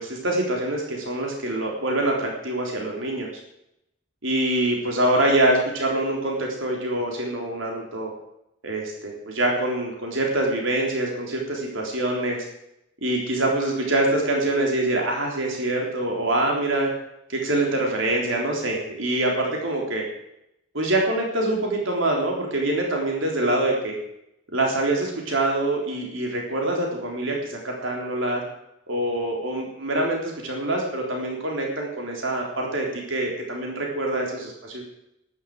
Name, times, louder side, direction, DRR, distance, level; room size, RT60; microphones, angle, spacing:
voice 1, 0.0-3.3 4.2-8.1 8.6-12.4 13.0-16.9 17.3-20.0 20.7-24.0 24.5-28.4 28.9-34.8, right 1 dB, 75° right, 0 dB, 3.6 m, -25 dB
12.0 x 11.0 x 7.7 m, 0.82 s
head